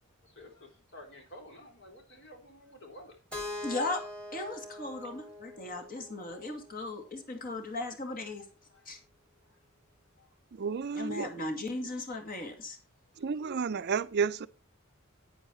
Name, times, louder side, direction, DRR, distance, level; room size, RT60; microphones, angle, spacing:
voice 1, 0.2-3.2 6.0-6.1 8.7-8.9 9.4-9.6 10.2-10.3, left 1 dB, 60° left, 3.7 m, -52 dB
Keyboard (musical), 3.3-7.2, left 2 dB, 5° left, 2.1 m, -43 dB
voice 2, 3.6-4.0 4.3-8.5 8.9-9.0 10.9-12.8, left 2 dB, 40° left, 2.2 m, -37 dB
voice 3, 10.5-11.3 13.2-14.5, right 5 dB, 50° right, 0.5 m, -31 dB
9.7 x 9.6 x 4.3 m
head